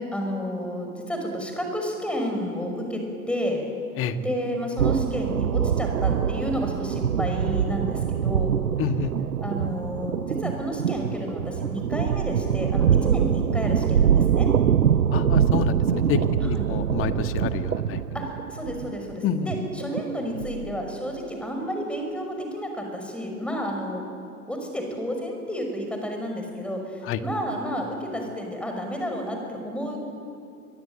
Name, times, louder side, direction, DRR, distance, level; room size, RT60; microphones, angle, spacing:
voice 1, 0.0-3.6 4.2-8.6 9.4-14.5 16.4-16.6 18.1-24.0 24.5-30.0, equal, ahead, 2 dB, 5.8 m, -31 dB
sound 1, 4.8-20.9, right 8 dB, 80° right, 0.8 m, -24 dB
voice 2, 8.8-9.1 15.1-16.2 16.4-18.0 19.2-19.5 27.1-27.2, left 8 dB, 30° left, 9 dB, 1.7 m, -28 dB
24.0 x 22.5 x 9.0 m, 2.5 s
figure-of-eight pair, 100°, 45 cm